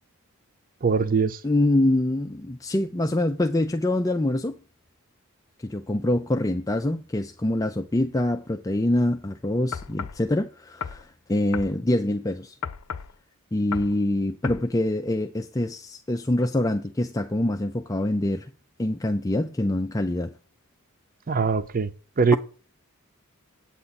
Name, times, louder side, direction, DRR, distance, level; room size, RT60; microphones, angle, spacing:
voice 1, 0.8-1.4 21.3-21.9 22.2-22.4, right 5 dB, 40° right, 0.5 m, -21 dB
voice 2, 1.4-4.6 5.6-12.5 13.5-18.5 18.8-20.3, left 1 dB, 15° left, 0.4 m, -25 dB
sound 1, 9.7-10.2 10.8-11.0 11.5-11.7 12.6-13.1 13.7-14.0 14.4-14.7, left 6 dB, 85° left, 0.6 m, -34 dB
8.6 x 8.2 x 4.1 m
head